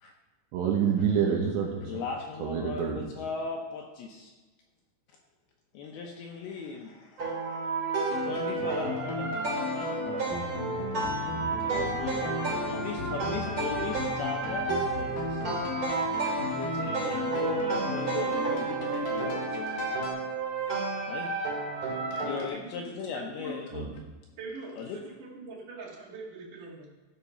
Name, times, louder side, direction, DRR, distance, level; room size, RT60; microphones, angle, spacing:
voice 1, 0.5-1.8 2.4-3.0 23.7-23.9, right 7 dB, 75° right, -1 dB, 3.1 m, -27 dB
voice 2, 1.9-4.3 5.7-10.6 11.4-12.3 12.6-14.7 14.9-15.4 16.5-19.6 21.1-21.3 22.1-23.9 24.8-25.0, left 5 dB, 80° left, 1 dB, 2.3 m, -38 dB
sound 1, 7.2-22.5, right 3 dB, 35° right, 2.9 m, -31 dB
sound 2, 8.1-20.1, left 2 dB, 55° left, 2.7 m, -36 dB
voice 3, 22.4-23.0 23.4-23.6 24.4-26.9, right 3 dB, 55° right, -2 dB, 2.8 m, -42 dB
14.5 x 5.1 x 5.7 m, 1.2 s
omnidirectional pair, 5.5 m